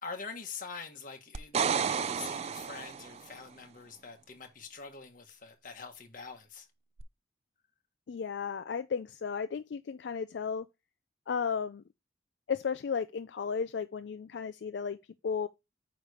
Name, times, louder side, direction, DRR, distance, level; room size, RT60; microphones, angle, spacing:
voice 1, 0.0-6.7, left 5 dB, 50° left, 1.5 m, -45 dB
sound 1, 1.3-3.3 7.0-7.1, right 6 dB, 35° right, 0.3 m, -31 dB
voice 2, 8.1-10.7 11.3-11.8 12.5-15.0 15.2-15.5, left 6 dB, 70° left, 0.4 m, -34 dB
8.8 x 3.2 x 5.0 m
head